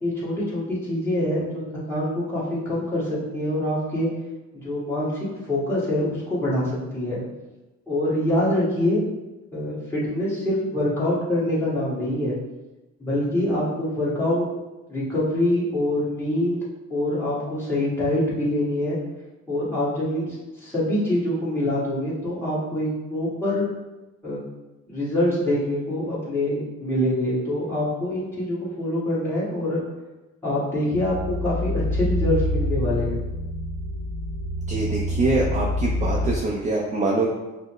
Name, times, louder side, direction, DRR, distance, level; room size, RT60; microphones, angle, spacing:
voice 1, 0.0-1.6 1.9-4.1 4.6-7.2 7.9-9.0 9.5-12.3 13.0-14.4 14.9-16.6 16.9-19.0 19.5-20.4 20.6-23.7 24.2-24.4 24.9-29.8 30.4-33.2, left 1 dB, 10° left, -9 dB, 1.4 m, -25 dB
sound 1, 30.9-36.4, left 1 dB, 90° left, 0.6 m, -26 dB
voice 2, 34.7-37.3, right 2 dB, 25° right, -2 dB, 0.4 m, -24 dB
5.3 x 2.0 x 3.0 m, 1.1 s
cardioid pair, 130°, 29 cm